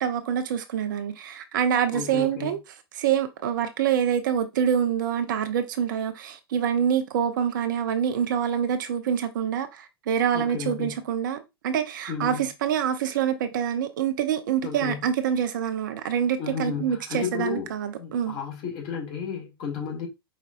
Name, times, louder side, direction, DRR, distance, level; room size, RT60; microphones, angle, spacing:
voice 1, 0.0-2.6 3.0-18.4, right 8 dB, 50° right, 0.7 m, -26 dB
voice 2, 1.9-2.6 10.3-10.9 12.1-12.4 14.6-15.0 16.4-17.7 18.0-20.1, left 7 dB, 40° left, 2.1 m, -33 dB
5.1 x 4.2 x 2.4 m
figure-of-eight pair, 95°, 13 cm